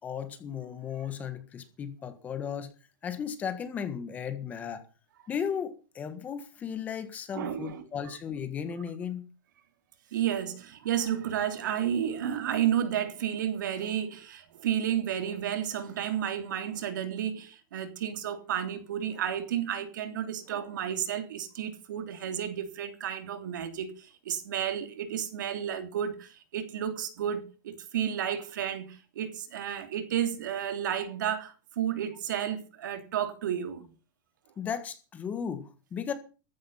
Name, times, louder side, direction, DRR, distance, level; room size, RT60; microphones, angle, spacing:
voice 1, 0.0-2.7 3.0-4.8 5.3-9.2 34.6-36.1, left 7 dB, 15° left, 1.5 m, -35 dB
voice 2, 7.3-7.8 10.1-33.9, right 9 dB, 60° right, 3.2 m, -32 dB
15.0 x 13.0 x 5.7 m
supercardioid pair, 175°, 11 cm